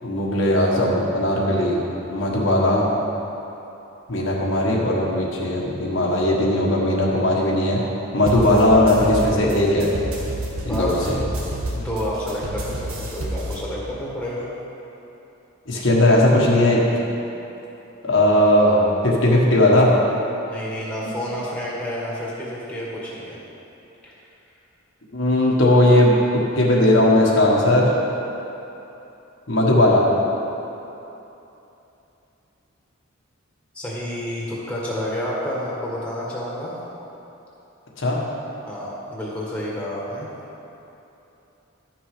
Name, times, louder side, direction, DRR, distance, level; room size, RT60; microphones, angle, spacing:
voice 1, 0.0-2.9 4.1-7.8 8.1-9.9 10.6-11.2 15.7-16.8 18.0-19.9 25.1-26.2 26.5-28.0 29.5-30.1 38.0-38.2, left 1 dB, 65° left, -4 dB, 1.4 m, -18 dB
sound 1, 8.3-13.6, right 1 dB, 85° right, 1.5 m, -30 dB
voice 2, 10.7-11.1 11.7-14.5 20.5-23.4 24.0-24.1 33.7-36.8 38.7-40.3, equal, 5° left, -6 dB, 1.7 m, -29 dB
11.5 x 6.2 x 5.0 m, 3.0 s
head